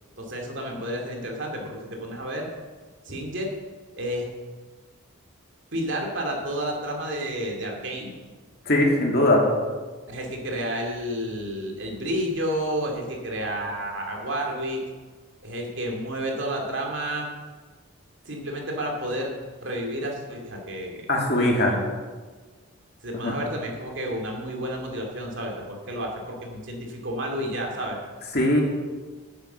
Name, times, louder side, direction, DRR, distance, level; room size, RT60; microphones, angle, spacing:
voice 1, 0.2-2.5 3.0-3.5 4.0-4.3 5.7-8.1 10.1-14.8 15.4-17.3 18.2-19.3 19.6-21.1 21.4-21.9 23.0-28.0, equal, 60° right, 0 dB, 2.5 m, -31 dB
voice 2, 8.7-9.4 21.1-21.7 23.1-23.3 28.3-28.6, left 1 dB, 50° left, -1 dB, 2.4 m, -20 dB
9.7 x 9.6 x 6.8 m, 1.4 s
head